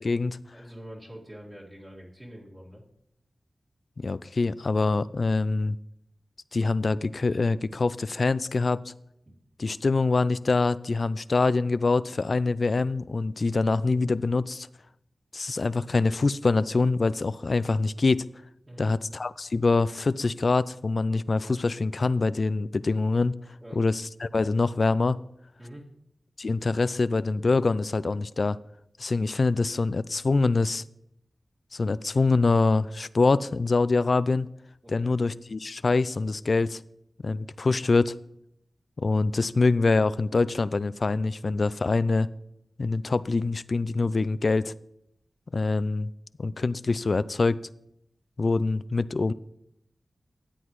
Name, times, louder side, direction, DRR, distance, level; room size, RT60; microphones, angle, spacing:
voice 1, 0.0-0.4 4.0-5.8 6.5-8.9 9.6-14.7 15.3-18.3 18.8-23.4 23.8-25.2 26.4-28.6 29.0-30.8 31.7-34.5 34.9-36.8 37.2-38.1 39.0-42.3 42.8-44.7 45.5-46.1 46.4-47.6 48.4-49.3, left 3 dB, 60° left, 17 dB, 0.3 m, -25 dB
voice 2, 0.5-2.8 18.7-18.9 23.6-23.8 25.6-25.9 34.8-35.2, equal, 30° right, -6 dB, 2.2 m, -45 dB
13.5 x 8.0 x 3.1 m, 0.80 s
cardioid pair, 40°, 0 cm